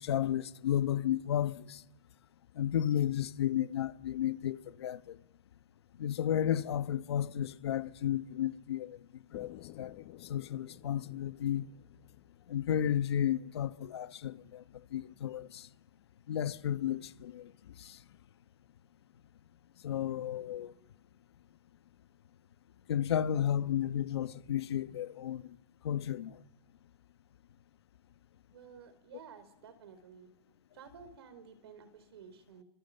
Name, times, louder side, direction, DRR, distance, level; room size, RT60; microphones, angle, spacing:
voice 1, 0.0-1.8 2.6-5.2 6.0-9.0 9.3-9.5 9.8-10.0 10.3-11.7 12.5-14.6 14.9-15.7 16.3-17.5 17.8-18.0 19.8-20.7 22.9-25.4 25.8-26.4, left 10 dB, 85° left, 1.1 m, -33 dB
sound 1, 9.3-13.2, left 17 dB, 45° left, 1.2 m, -53 dB
voice 2, 28.5-30.3 30.7-32.6, right 7 dB, 85° right, 4.5 m, -53 dB
29.0 x 24.5 x 7.8 m
supercardioid pair, 145°, 13 cm